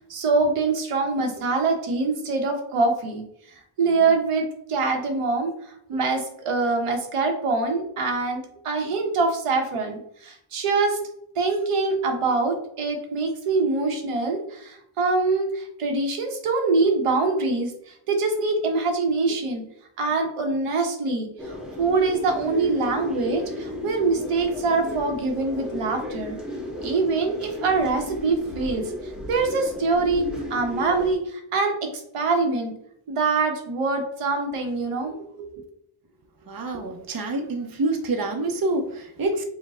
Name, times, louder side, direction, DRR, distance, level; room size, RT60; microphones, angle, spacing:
voice 1, 0.1-3.2 3.8-11.0 11.4-19.6 20.0-26.4 26.8-28.9 29.3-32.7 33.1-35.6, right 3 dB, 90° right, 3 dB, 1.1 m, -24 dB
sound 1, 21.4-31.2, left 1 dB, ahead, 1.2 m, -34 dB
voice 2, 36.5-39.4, right 2 dB, 45° right, 4 dB, 0.7 m, -27 dB
5.1 x 2.2 x 4.1 m, 0.71 s
wide cardioid pair, 95°, 50 cm